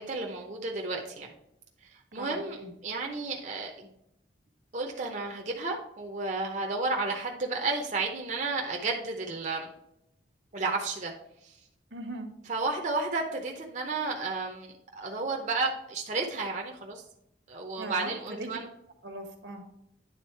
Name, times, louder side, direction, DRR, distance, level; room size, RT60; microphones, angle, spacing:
voice 1, 0.0-1.3 2.1-3.9 4.7-9.7 10.5-11.1 11.4-11.5 12.5-17.0 17.5-18.7, right 3 dB, 45° right, 1 dB, 0.8 m, -32 dB
voice 2, 2.1-2.7 11.9-12.3 17.8-18.5 19.0-19.6, right 1 dB, 85° right, 4 dB, 1.3 m, -39 dB
9.4 x 3.8 x 4.5 m, 0.81 s
head